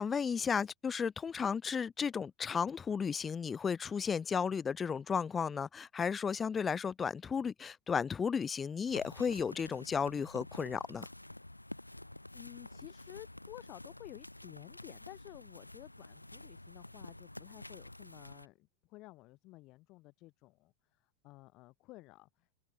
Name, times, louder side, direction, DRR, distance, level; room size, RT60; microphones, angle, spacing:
voice 1, 0.0-11.1, left 6 dB, 20° left, 0.9 m, -34 dB
sound 1, 8.9-18.5, left 1 dB, 85° left, 3.5 m, -50 dB
voice 2, 11.7-22.5, left 20 dB, 40° left, 1.9 m, -53 dB
figure-of-eight pair, 90°, 0 cm